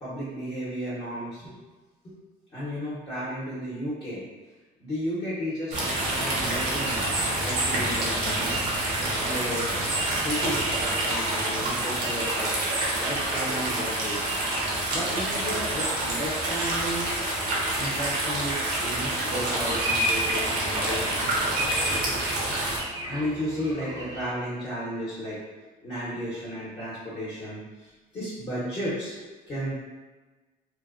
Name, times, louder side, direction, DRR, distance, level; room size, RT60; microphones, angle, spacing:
voice 1, 0.0-1.5 2.0-2.1 2.5-4.2 4.8-8.5 9.0-9.6 10.2-12.5 13.0-14.3 14.9-17.1 17.8-21.3 23.1-25.4 25.8-29.8, equal, 30° left, -9 dB, 0.8 m, -33 dB
sound 1, 5.7-22.8, right 1 dB, 75° right, 0.8 m, -27 dB
sound 2, 19.1-24.3, right 1 dB, 20° right, 0.4 m, -41 dB
2.9 x 2.1 x 2.4 m, 1.3 s
cardioid pair, 110°, 17 cm